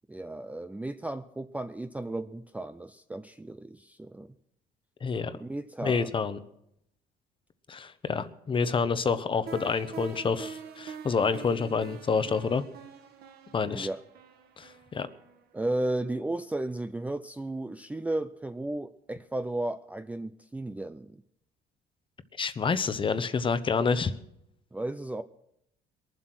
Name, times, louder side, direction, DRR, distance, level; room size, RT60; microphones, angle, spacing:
voice 1, 0.1-4.3 5.3-6.1 13.6-14.0 15.5-21.2 24.7-25.2, right 2 dB, 10° right, 10 dB, 0.5 m, -34 dB
voice 2, 5.0-5.3 5.8-6.4 7.7-12.6 13.5-13.9 14.6-15.1 22.4-24.1, left 5 dB, 30° left, 12 dB, 0.9 m, -28 dB
sound 1, 9.5-16.2, right 6 dB, 70° right, 1.5 m, -45 dB
22.0 x 7.7 x 6.1 m, 0.78 s
cardioid pair, 110°, 17 cm